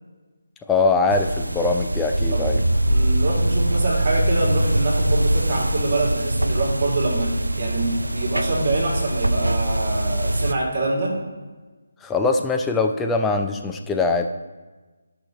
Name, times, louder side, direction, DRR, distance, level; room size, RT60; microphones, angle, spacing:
voice 1, 0.7-2.6 12.0-14.3, left 3 dB, 5° left, 4 dB, 0.4 m, -22 dB
sound 1, 1.1-10.5, right 1 dB, 75° right, 0.4 m, -23 dB
voice 2, 2.9-11.2, right 2 dB, 35° right, -2 dB, 2.2 m, -25 dB
14.5 x 5.8 x 3.0 m, 1.3 s
figure-of-eight pair, 150°, 0 cm